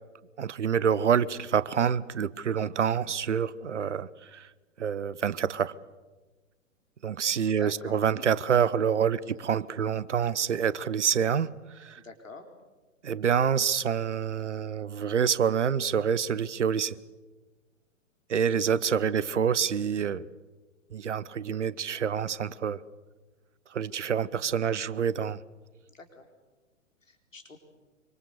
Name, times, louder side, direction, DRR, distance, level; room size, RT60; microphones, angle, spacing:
voice 1, 0.4-4.4 4.8-5.7 7.0-11.5 11.8-12.0 13.0-16.9 18.3-20.3 20.9-22.8 23.7-25.4, right 7 dB, 65° right, 20 dB, 0.9 m, -27 dB
voice 2, 7.4-8.0 9.1-9.4 11.9-12.5 19.1-19.4 20.9-21.4 25.9-26.3 27.0-27.6, left 3 dB, 75° left, 5 dB, 4.1 m, -48 dB
25.0 x 25.0 x 6.8 m, 1.3 s
figure-of-eight pair, 115°, 39 cm